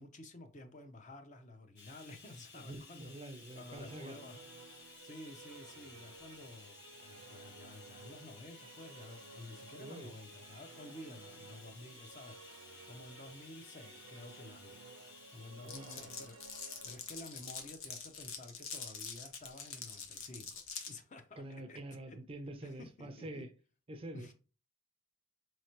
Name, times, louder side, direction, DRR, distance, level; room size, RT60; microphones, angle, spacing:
voice 1, 0.0-3.1 3.5-4.5 5.0-14.8 15.3-16.4 16.8-21.4 21.7-21.8 22.1-22.2 22.6-23.4 24.1-24.3, left 2 dB, 35° left, 0.5 m, -52 dB
Bathtub (filling or washing), 1.8-18.4 19.3-19.5 19.8-19.9, left 4 dB, 55° left, 1.0 m, -57 dB
voice 2, 2.6-4.2 9.8-10.2 15.6-16.2 21.4-23.5 23.9-24.3, right 1 dB, 25° right, 0.4 m, -46 dB
Musical instrument, 3.3-18.7, right 4 dB, 85° right, 0.5 m, -56 dB
Glass, 15.7-20.9, left 6 dB, 75° left, 0.8 m, -45 dB
4.1 x 3.1 x 2.8 m
head